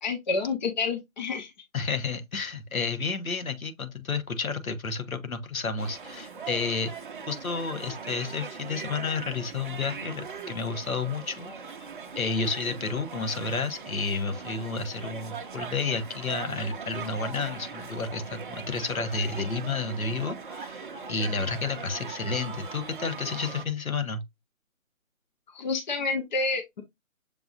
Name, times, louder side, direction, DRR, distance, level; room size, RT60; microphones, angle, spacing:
voice 1, 0.0-1.5 25.5-26.8, left 4 dB, 35° left, 0.9 m, -29 dB
voice 2, 1.7-6.9 7.3-11.5 12.1-24.2, left 4 dB, 85° left, 1.2 m, -31 dB
sound 1, 5.8-23.6, right 5 dB, 40° right, 0.6 m, -40 dB
6.8 x 2.7 x 2.5 m
figure-of-eight pair, 150°, 41 cm